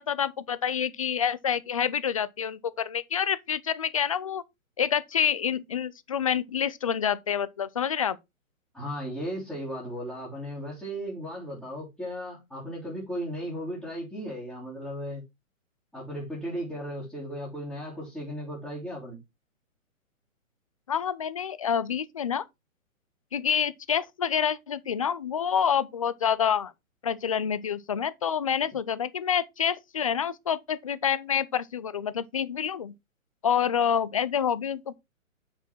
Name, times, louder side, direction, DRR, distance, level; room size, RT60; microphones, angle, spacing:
voice 1, 0.0-4.4 4.8-8.2 20.9-22.4 23.3-26.7 27.0-32.9 33.4-35.0, left 8 dB, 25° left, 0.4 m, -27 dB
voice 2, 8.7-15.2 15.9-19.2, equal, ahead, 3.4 m, -36 dB
8.1 x 6.0 x 4.4 m
hypercardioid pair, 135°, 41 cm